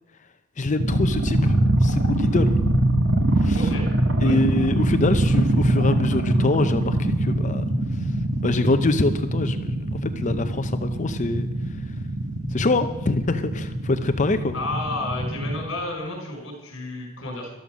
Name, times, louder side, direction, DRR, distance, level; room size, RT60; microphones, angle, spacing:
voice 1, 0.6-1.5 1.8-2.6 3.4-3.6 4.2-7.6 8.4-9.7 10.0-11.5 12.5-14.6, left 2 dB, 35° left, 9 dB, 0.6 m, -24 dB
sound 1, 0.8-15.7, right 1 dB, 60° right, 1.8 m, -22 dB
voice 2, 3.5-3.9 4.2-4.4 14.5-17.5, left 2 dB, 60° left, 2 dB, 5.1 m, -31 dB
12.5 x 12.5 x 6.2 m, 1.1 s
head